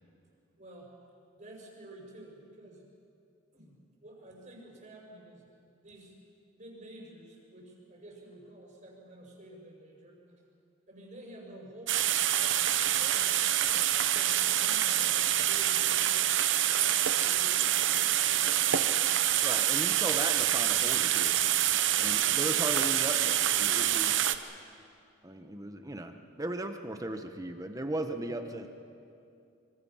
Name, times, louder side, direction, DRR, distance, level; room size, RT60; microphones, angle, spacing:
voice 1, 0.6-0.9 1.4-2.8 3.5-5.4 5.8-6.1 6.6-10.2 10.9-13.8 14.2-16.3 16.7-18.9 21.9-22.3, right 1 dB, 40° right, -2 dB, 5.8 m, -51 dB
sound 1, 11.9-24.4, right 11 dB, 65° right, 0.9 m, -26 dB
voice 2, 19.4-21.4 22.0-24.3 25.2-28.7, right 1 dB, 15° right, 6 dB, 1.1 m, -37 dB
25.5 x 25.0 x 5.8 m, 2.5 s
head